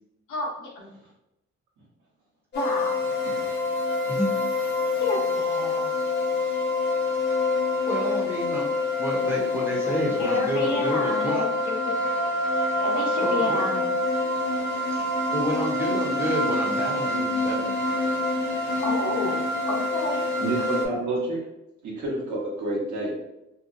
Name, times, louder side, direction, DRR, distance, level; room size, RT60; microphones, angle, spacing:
voice 1, 0.3-0.9 2.5-2.9 5.0-5.9 10.2-11.9 12.8-13.9 18.8-19.4 19.7-20.2, left 3 dB, 90° left, -2 dB, 0.7 m, -30 dB
sound 1, 2.5-20.9, left 2 dB, 40° left, 0.4 m, -26 dB
voice 2, 7.8-8.7 9.0-11.5 13.2-13.6 14.9-15.0 15.3-17.8, equal, 10° right, -3 dB, 0.7 m, -29 dB
voice 3, 20.4-21.4 21.8-23.1, right 2 dB, 80° right, -4 dB, 1.0 m, -29 dB
2.7 x 2.1 x 2.5 m, 0.87 s
cardioid pair, 145°, 29 cm